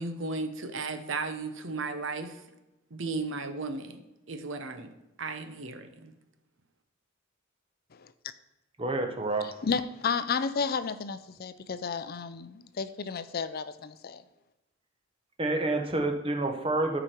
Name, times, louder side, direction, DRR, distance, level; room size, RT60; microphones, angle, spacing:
voice 1, 0.0-2.4 2.9-4.0 4.3-4.9 5.2-6.1, right 3 dB, 65° right, 8 dB, 0.9 m, -35 dB
voice 2, 8.8-9.5 15.4-17.0, right 2 dB, 25° right, 4 dB, 1.0 m, -28 dB
voice 3, 9.6-14.2, left 5 dB, 45° left, 13 dB, 0.5 m, -32 dB
13.0 x 5.1 x 4.5 m, 0.99 s
head